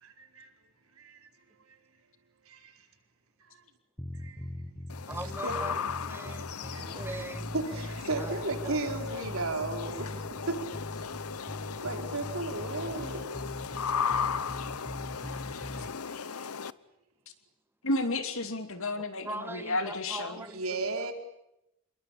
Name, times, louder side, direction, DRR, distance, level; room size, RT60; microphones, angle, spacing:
voice 1, 0.0-0.5 1.0-1.3 2.5-2.8 4.1-4.4 5.4-5.5 6.7-6.8 7.1-7.2 7.5-10.2 10.5-10.6 11.7-13.4 15.2-16.2 20.5-21.1, right 2 dB, 70° right, 4.5 m, -35 dB
sound 1, 4.0-15.9, left 1 dB, 10° left, 1.2 m, -41 dB
sound 2, 4.9-16.7, left 6 dB, 90° left, 1.0 m, -36 dB
voice 2, 5.1-7.5 8.1-8.3 8.6-8.7 19.2-21.1, right 1 dB, 10° right, 1.5 m, -41 dB
voice 3, 17.8-20.4, left 2 dB, 65° left, 2.9 m, -32 dB
28.0 x 22.5 x 8.7 m
head